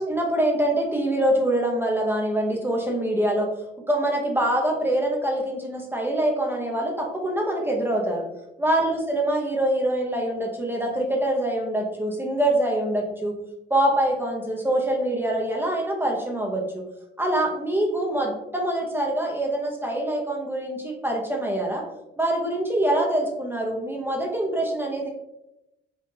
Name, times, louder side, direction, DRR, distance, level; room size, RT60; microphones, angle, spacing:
voice 1, 0.0-3.5 3.9-8.2 8.6-13.3 13.7-16.6 17.2-21.8 22.2-25.1, right 1 dB, 10° right, 0 dB, 0.7 m, -24 dB
3.7 x 2.6 x 2.7 m, 0.89 s
cardioid pair, 90°, 20 cm